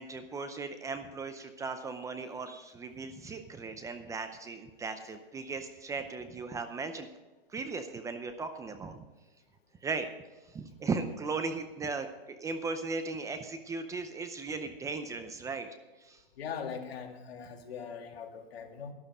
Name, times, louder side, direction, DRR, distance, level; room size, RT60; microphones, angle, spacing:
voice 1, 0.0-7.1 7.5-9.0 9.8-10.1 10.5-12.1 12.4-15.7 16.0-16.2, right 4 dB, 10° right, 9 dB, 0.6 m, -37 dB
voice 2, 16.4-18.9, left 6 dB, 80° left, 3 dB, 2.3 m, -41 dB
12.5 x 11.5 x 4.9 m, 1.1 s
hypercardioid pair, 150°, 30 cm